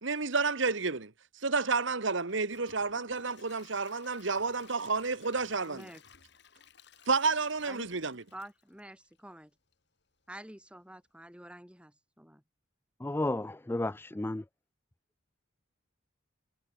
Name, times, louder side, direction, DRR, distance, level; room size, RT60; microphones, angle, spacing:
voice 1, 0.0-1.1 1.4-5.8 7.1-8.2, right 4 dB, 65° right, 1.5 m, -30 dB
Gurgling / Toilet flush / Trickle dribble, 2.2-9.3 9.7-9.8 10.3-10.4, left 5 dB, 55° left, 4.8 m, -58 dB
voice 2, 5.7-6.0 7.7-7.9 8.3-9.5 10.3-12.4, right 1 dB, 5° right, 4.9 m, -48 dB
voice 3, 13.0-14.4, left 2 dB, 10° left, 0.3 m, -32 dB
head